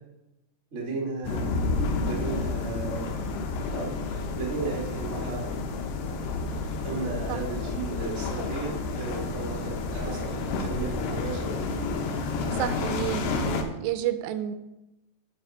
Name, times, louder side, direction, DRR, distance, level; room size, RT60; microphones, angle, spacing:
voice 1, 0.7-1.6 2.0-3.1 3.7-5.5 6.8-11.7, right 4 dB, 35° right, -3 dB, 1.0 m, -35 dB
sound 1, 1.2-13.6, left 3 dB, 75° left, 2.8 m, -30 dB
voice 2, 12.5-14.6, right 11 dB, 85° right, 10 dB, 2.8 m, -30 dB
9.4 x 4.6 x 6.3 m, 0.94 s
omnidirectional pair, 5.0 m